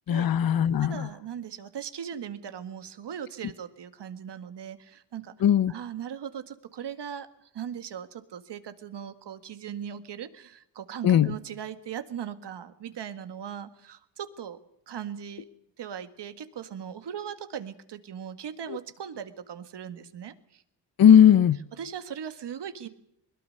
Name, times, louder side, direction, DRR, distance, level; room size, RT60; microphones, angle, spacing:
voice 1, 0.1-1.1 5.4-5.7 11.0-11.3 21.0-21.6, left 9 dB, 55° left, 16 dB, 0.8 m, -18 dB
voice 2, 0.8-5.3 5.7-7.3 7.5-14.6 14.9-15.5 15.8-20.6 21.7-22.9, right 8 dB, 75° right, 11 dB, 1.9 m, -39 dB
21.5 x 21.0 x 6.6 m, 0.75 s
wide cardioid pair, 125°, 42 cm